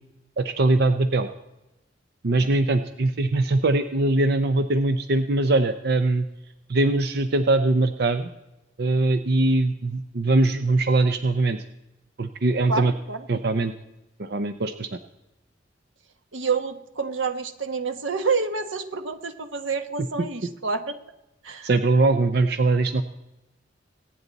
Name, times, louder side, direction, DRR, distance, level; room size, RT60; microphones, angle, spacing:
voice 1, 0.4-1.3 2.2-6.3 6.7-8.3 8.8-11.6 12.2-12.9 13.3-13.7 14.2-15.0 21.6-23.0, right 2 dB, 55° right, 9 dB, 0.6 m, -21 dB
voice 2, 12.7-13.2 16.3-21.0 21.4-21.7, right 4 dB, 85° right, 9 dB, 1.2 m, -28 dB
23.5 x 9.4 x 4.1 m, 0.95 s
head